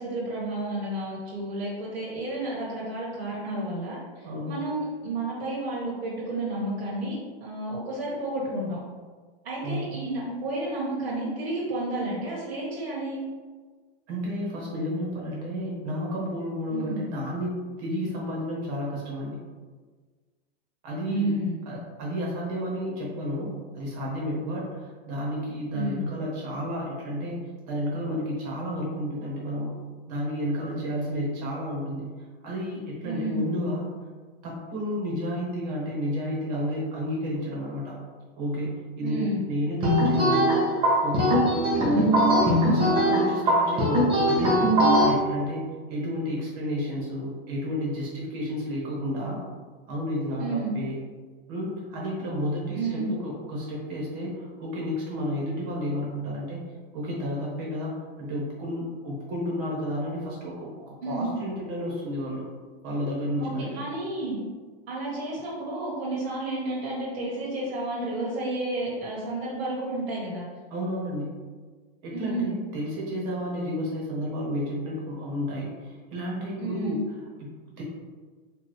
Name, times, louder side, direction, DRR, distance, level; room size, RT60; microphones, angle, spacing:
voice 1, 0.0-4.0 4.4-8.8 9.4-13.2 16.7-17.0 21.1-21.6 25.7-26.1 33.0-33.4 39.0-39.4 41.8-42.1 42.5-42.8 50.4-50.7 52.7-53.1 61.0-61.3 63.4-64.4 64.9-70.4 72.1-72.5 76.6-77.0, right 2 dB, 85° right, -6 dB, 1.5 m, -31 dB
voice 2, 4.2-4.6 9.6-9.9 14.1-17.5 17.8-19.4 20.8-27.4 27.7-29.8 30.1-32.1 32.4-33.9 34.4-38.0 38.4-40.5 41.0-41.4 41.8-49.4 49.9-51.0 51.5-56.6 56.9-62.4 62.8-63.8 70.7-71.4 72.0-77.8, equal, 40° right, -3 dB, 1.3 m, -31 dB
sound 1, 39.8-45.1, equal, 15° right, 0.8 m, -21 dB
4.4 x 2.7 x 3.2 m, 1.4 s
supercardioid pair, 160°, 31 cm